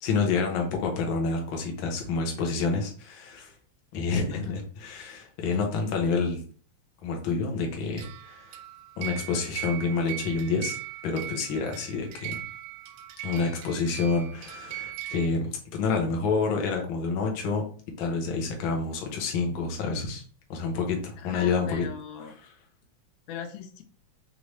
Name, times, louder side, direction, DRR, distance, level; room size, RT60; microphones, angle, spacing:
voice 1, 0.0-3.5 3.9-6.4 7.0-8.6 9.0-10.8 11.0-12.4 13.2-17.6 18.0-20.2 20.5-21.8 22.2-22.5, left 4 dB, 60° left, 1 dB, 1.3 m, -28 dB
sound 1, 7.9-15.3, right 13 dB, 85° right, 1.4 m, -39 dB
voice 2, 21.2-22.4 23.3-23.8, left 7 dB, 85° left, 7 dB, 2.1 m, -39 dB
5.1 x 2.8 x 3.1 m, 0.42 s
omnidirectional pair, 3.3 m